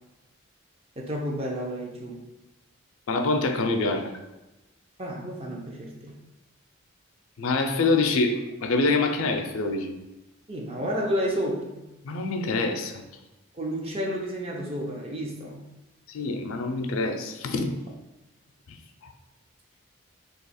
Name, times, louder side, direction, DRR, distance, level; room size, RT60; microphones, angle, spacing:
voice 1, 1.0-2.2 5.0-6.2 10.5-11.9 13.5-15.6, equal, 30° right, -1 dB, 0.5 m, -31 dB
voice 2, 3.1-4.1 7.4-9.9 12.0-13.0 16.1-17.7, left 3 dB, 80° left, 6 dB, 0.4 m, -25 dB
2.8 x 2.3 x 4.1 m, 1.0 s
head